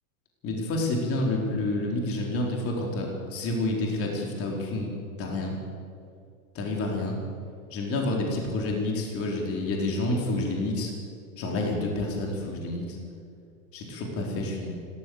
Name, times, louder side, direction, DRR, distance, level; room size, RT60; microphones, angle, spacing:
voice 1, 0.4-4.9 5.2-5.6 6.5-7.2 7.7-10.9 11.4-13.0 13.7-14.7, left 2 dB, 30° left, 0 dB, 4.2 m, -29 dB
29.5 x 13.5 x 8.0 m, 2.4 s
hypercardioid pair, 130°, 44 cm